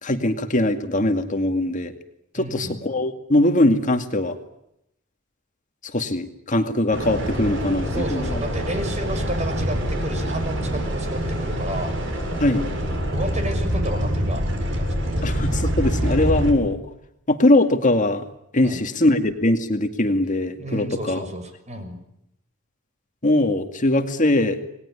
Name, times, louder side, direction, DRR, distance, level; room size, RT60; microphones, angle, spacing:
voice 1, 0.0-1.9 2.3-4.4 5.9-8.3 12.4-12.7 15.2-16.8 17.3-18.2 18.5-21.3 23.2-24.6, left 1 dB, 40° left, 7 dB, 2.2 m, -21 dB
voice 2, 2.3-2.7 7.9-11.9 13.1-15.3 18.6-18.8 20.6-22.0, right 1 dB, 35° right, 7 dB, 6.4 m, -32 dB
sound 1, 6.9-16.5, equal, 70° right, 7.7 m, -25 dB
29.0 x 20.5 x 9.9 m, 0.82 s
head